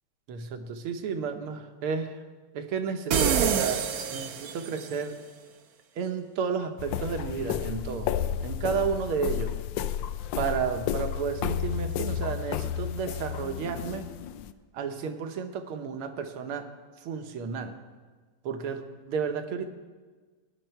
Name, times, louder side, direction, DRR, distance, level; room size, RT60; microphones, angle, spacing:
voice 1, 0.3-2.2 2.5-5.2 6.0-9.5 10.4-14.1 14.7-16.7 17.0-17.8 18.4-19.7, right 6 dB, 80° right, 7 dB, 1.9 m, -32 dB
sound 1, 3.1-4.9, right 7 dB, 65° right, 1.0 m, -26 dB
sound 2, 6.8-14.5, left 10 dB, 75° left, 1.1 m, -32 dB
18.0 x 10.5 x 4.5 m, 1.4 s
omnidirectional pair, 2.4 m